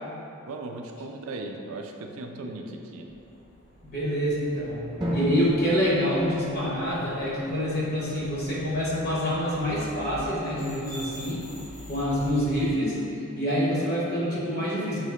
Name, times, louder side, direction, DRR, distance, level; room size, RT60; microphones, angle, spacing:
voice 1, 0.5-3.1, right 2 dB, 70° right, 3 dB, 0.4 m, -37 dB
sound 1, 3.0-12.7, equal, 80° left, 1.4 m, -46 dB
voice 2, 3.8-11.4 11.9-13.0 13.4-15.0, equal, 45° left, -6 dB, 0.8 m, -26 dB
Drum, 5.0-7.5, equal, 20° right, 0.7 m, -32 dB
4.6 x 2.9 x 3.1 m, 2.9 s
head